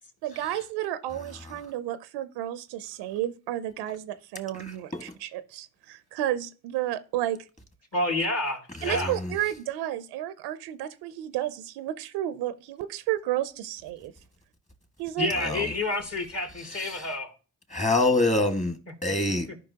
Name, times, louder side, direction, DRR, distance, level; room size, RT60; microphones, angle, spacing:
voice 1, 0.2-7.4 8.8-14.1 15.0-15.3, right 13 dB, 80° right, 0.6 m, -32 dB
voice 2, 7.9-9.1 15.2-17.3, left 2 dB, 35° left, 2.5 m, -29 dB
voice 3, 8.8-9.3 15.4-15.7 16.7-17.1 17.7-19.4, left 2 dB, 20° left, 1.8 m, -26 dB
13.5 x 5.3 x 2.8 m
supercardioid pair, 55°, 40 cm